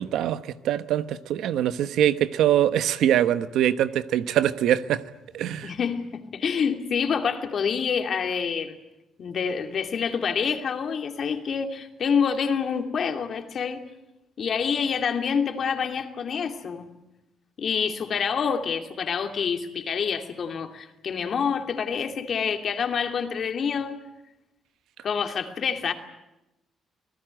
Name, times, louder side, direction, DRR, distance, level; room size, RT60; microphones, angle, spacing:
voice 1, 0.0-5.0 5.3-5.7, right 11 dB, 85° right, 1.0 m, -23 dB
voice 2, 5.6-8.8 9.2-13.8 14.4-16.9 17.6-24.0 25.0-25.9, left 6 dB, 55° left, 2.6 m, -27 dB
26.5 x 18.0 x 9.0 m
cardioid pair, 90°, 0 cm